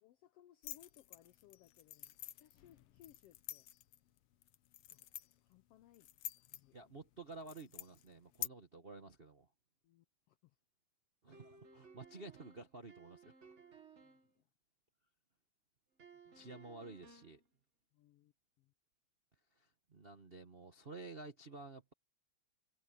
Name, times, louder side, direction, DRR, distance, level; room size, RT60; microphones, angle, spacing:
voice 1, 0.0-3.7 4.9-5.0 5.4-6.1 6.4-6.8 9.8-10.5 14.0-14.4 16.3-16.5 17.9-18.7, left 12 dB, 85° left, 1.3 m, -65 dB
sound 1, 0.6-8.5, left 12 dB, 70° left, 1.5 m, -49 dB
voice 2, 6.7-9.5 11.2-13.3 16.3-17.4 19.6-21.9, right 3 dB, 85° right, 0.5 m, -52 dB
sound 2, 11.3-14.3 16.0-17.4, right 5 dB, 35° right, 1.3 m, -60 dB
omnidirectional pair, 3.5 m